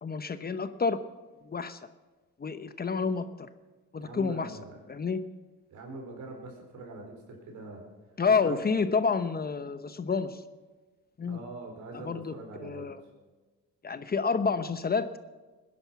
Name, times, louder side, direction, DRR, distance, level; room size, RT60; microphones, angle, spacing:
voice 1, 0.0-1.0 1.4-1.8 2.4-3.3 3.9-4.5 4.9-5.2 8.2-10.4 11.2-11.4 12.0-13.0 13.8-15.1, left 5 dB, 30° left, 11 dB, 0.9 m, -29 dB
voice 2, 4.0-4.8 5.7-7.9 8.4-8.6 11.2-12.9, right 2 dB, 75° right, 1 dB, 4.6 m, -43 dB
19.5 x 10.5 x 5.9 m, 1.3 s
cardioid pair, 90°, 30 cm